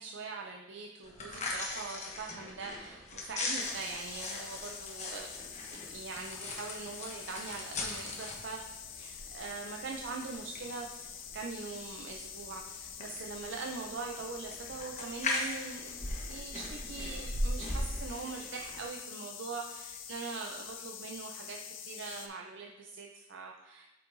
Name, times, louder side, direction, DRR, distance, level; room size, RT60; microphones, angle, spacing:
voice 1, 0.0-5.3 5.7-15.9 16.2-23.8, right 4 dB, 65° right, 1 dB, 0.5 m, -42 dB
sound 1, 1.0-18.9, left 2 dB, 35° left, 1.1 m, -40 dB
sound 2, 3.6-22.3, left 8 dB, 85° left, 0.7 m, -46 dB
8.2 x 5.7 x 2.6 m, 1.1 s
head